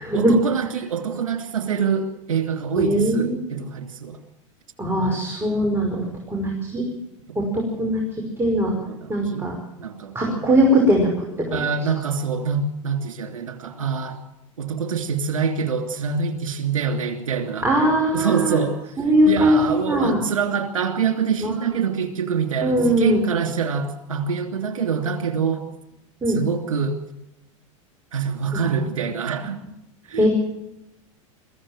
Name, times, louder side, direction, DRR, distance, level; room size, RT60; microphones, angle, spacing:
voice 1, 0.1-4.2 5.0-5.2 8.9-9.5 9.8-10.4 11.5-14.2 14.6-17.7 18.1-18.8 19.3-25.6 26.3-27.0 28.1-29.6 30.1-30.3, right 6 dB, 80° right, 7 dB, 2.9 m, -25 dB
voice 2, 2.8-3.4 4.8-6.8 7.4-8.0 8.4-8.7 9.1-9.6 10.1-11.6 17.6-18.6 19.0-20.2 21.4-21.5 22.6-23.2 26.2-26.4 28.5-28.6 30.2-30.3, equal, 15° right, 0 dB, 5.7 m, -20 dB
22.5 x 15.5 x 7.5 m, 0.86 s
hypercardioid pair, 95°, 17 cm